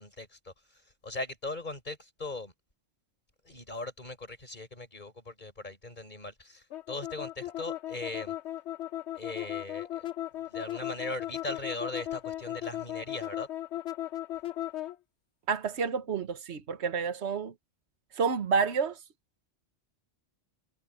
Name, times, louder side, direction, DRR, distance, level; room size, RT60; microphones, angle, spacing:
voice 1, 0.0-2.5 3.5-8.4 9.2-10.1 10.5-13.5, left 2 dB, 45° left, 5.2 m, -39 dB
sound 1, 6.7-15.0, left 13 dB, 80° left, 1.0 m, -36 dB
voice 2, 15.5-17.5 18.1-19.0, right 5 dB, 75° right, 1.4 m, -29 dB
omnidirectional pair, 1.1 m